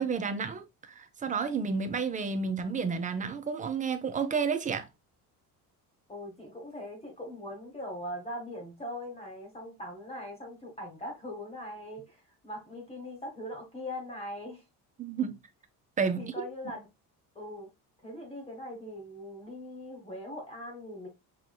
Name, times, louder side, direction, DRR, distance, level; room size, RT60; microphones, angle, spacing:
voice 1, 0.0-4.9 15.0-15.3 16.0-16.4, right 5 dB, 20° right, 0.5 m, -31 dB
voice 2, 6.1-14.6 16.2-16.9 17.3-17.7 18.0-21.1, left 1 dB, 15° left, 1.1 m, -41 dB
4.9 x 3.0 x 2.2 m
cardioid pair, 140°, 37 cm